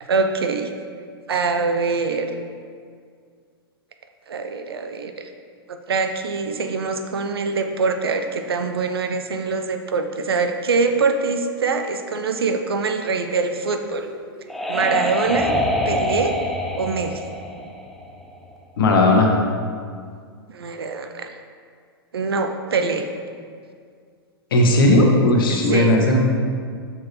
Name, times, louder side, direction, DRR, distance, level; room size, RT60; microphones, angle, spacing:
voice 1, 0.1-0.7 1.3-2.3 4.3-5.3 5.7-14.1 14.7-15.5 15.9-16.4 16.8-17.2 20.5-21.3 22.1-23.1 25.5-26.0, right 4 dB, 75° right, 6 dB, 0.6 m, -24 dB
sound 1, 13.9-18.5, left 1 dB, ahead, 0.5 m, -25 dB
voice 2, 18.8-19.3 24.5-26.2, left 1 dB, 60° left, 1 dB, 1.2 m, -16 dB
7.0 x 6.2 x 3.1 m, 2.1 s
figure-of-eight pair, 105°, 13 cm